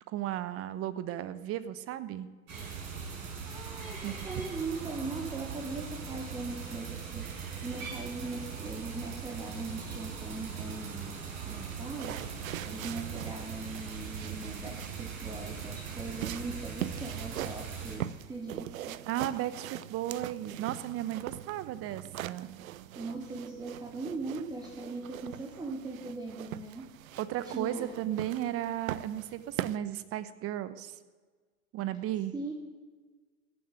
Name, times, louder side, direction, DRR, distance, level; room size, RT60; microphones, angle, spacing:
voice 1, 0.1-2.3 4.0-4.1 19.1-22.5 27.2-31.0 31.7-32.3, right 12 dB, 30° right, 14 dB, 0.9 m, -35 dB
sound 1, 2.5-18.0, right 6 dB, 45° right, 5.2 m, -40 dB
voice 2, 3.5-7.3 7.6-11.2 11.4-12.2 12.7-19.0 22.9-26.9 27.4-27.9 32.3-32.5, right 3 dB, 10° right, 2 dB, 1.4 m, -40 dB
sound 2, 11.3-29.8, right 12 dB, 70° right, 0.7 m, -42 dB
15.0 x 7.5 x 9.3 m, 1.4 s
hypercardioid pair, 105°, 43 cm